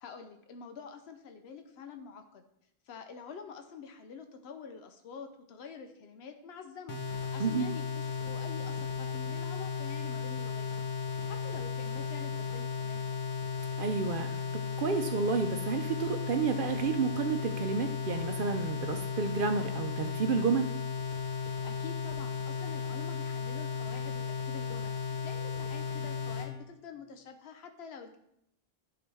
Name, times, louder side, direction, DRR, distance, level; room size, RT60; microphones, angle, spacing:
voice 1, 0.0-2.4 2.9-10.7 11.3-13.1 21.5-28.2, left 6 dB, 85° left, 6 dB, 0.9 m, -47 dB
sound 1, 6.9-26.5, left 6 dB, 50° left, 1.0 m, -35 dB
voice 2, 13.8-14.4 14.8-20.7, right 5 dB, 65° right, 6 dB, 0.7 m, -30 dB
11.0 x 3.9 x 3.4 m, 0.77 s
omnidirectional pair, 1.0 m